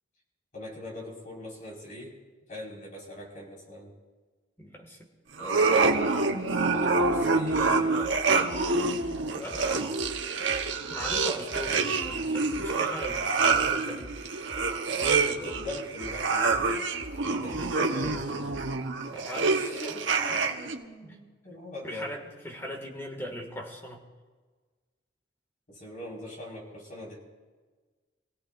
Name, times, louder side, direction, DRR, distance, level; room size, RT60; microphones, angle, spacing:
voice 1, 0.5-2.1 2.5-4.0 5.4-8.3 9.2-9.7 11.6-11.9 14.9-16.9 17.2-18.5 19.5-22.1 25.7-27.2, left 1 dB, 45° left, -3 dB, 5.2 m, -41 dB
voice 2, 4.6-5.0 9.3-9.9 10.9-14.1 19.1-19.6 19.9-20.0 20.3-20.4 21.0-21.2 21.8-24.0, equal, 15° left, 1 dB, 2.1 m, -39 dB
sound 1, 5.4-20.8, right 4 dB, 90° right, 1.2 m, -27 dB
sound 2, 7.0-19.0, equal, 35° right, 1.2 m, -48 dB
26.5 x 16.5 x 2.6 m, 1.4 s
head